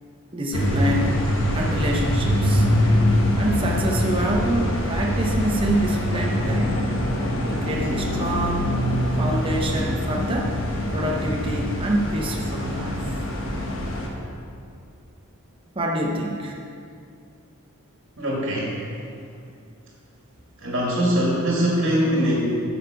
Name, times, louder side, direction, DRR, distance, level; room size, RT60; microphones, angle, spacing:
voice 1, 0.3-1.2 1.5-2.7 3.4-8.7 9.1-10.6 10.9-13.0 15.7-16.6, right 1 dB, 25° right, -1 dB, 0.7 m, -26 dB
sound 1, 0.5-14.1, equal, 60° left, 1.3 m, -24 dB
voice 2, 18.2-18.8 20.6-22.4, equal, 50° right, -4 dB, 2.0 m, -22 dB
9.1 x 6.9 x 5.0 m, 2.4 s
head